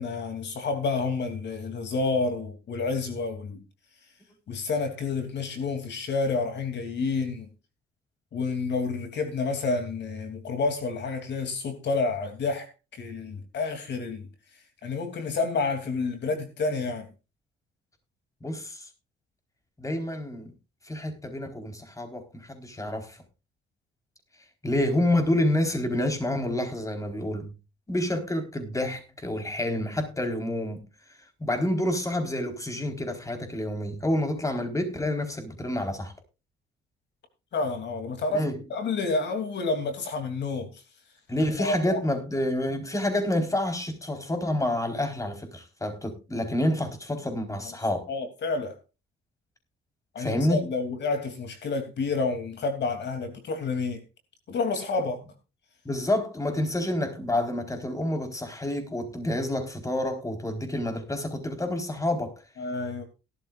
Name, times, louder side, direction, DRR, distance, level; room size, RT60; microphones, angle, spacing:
voice 1, 0.0-3.6 4.5-7.5 8.3-14.3 14.8-17.1 37.5-40.8 41.6-42.0 48.1-48.8 50.1-54.0 54.5-55.2 56.8-56.9 62.6-63.0, left 3 dB, 60° left, 3.0 m, -29 dB
voice 2, 18.4-18.9 19.8-20.5 20.8-23.2 24.6-27.5 27.9-30.8 31.4-36.1 38.3-38.6 41.3-48.1 50.2-50.6 55.8-62.4, left 1 dB, 15° left, 4.3 m, -28 dB
17.5 x 12.5 x 2.5 m
cardioid pair, 90°, 20 cm